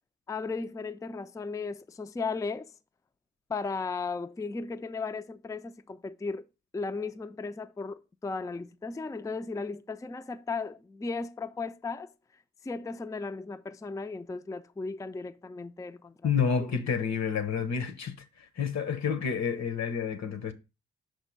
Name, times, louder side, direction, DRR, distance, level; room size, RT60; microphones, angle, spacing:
voice 1, 0.3-2.7 3.5-6.5 6.7-12.1 12.6-16.7, left 4 dB, 10° left, 0.4 m, -36 dB
voice 2, 16.2-20.5, left 6 dB, 65° left, 1.0 m, -29 dB
5.5 x 3.7 x 5.3 m
supercardioid pair, 45°, 29 cm